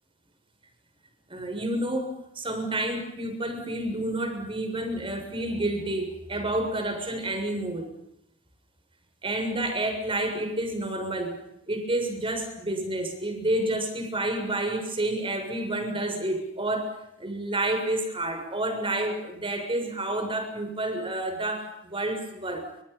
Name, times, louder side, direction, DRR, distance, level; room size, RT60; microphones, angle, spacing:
voice 1, 1.3-7.9 9.2-11.4 11.7-22.7, right 1 dB, 25° right, 5 dB, 7.0 m, -29 dB
30.0 x 27.0 x 5.7 m, 0.82 s
head